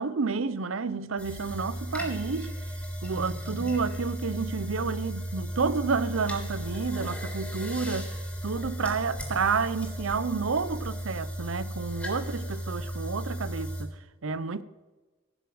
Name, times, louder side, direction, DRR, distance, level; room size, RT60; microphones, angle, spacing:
voice 1, 0.0-2.5 3.0-8.1 8.4-13.9 14.2-14.6, right 4 dB, 75° right, 0.7 m, -30 dB
sound 1, 1.2-13.8, equal, 5° left, 3.1 m, -35 dB
16.0 x 7.0 x 7.8 m
head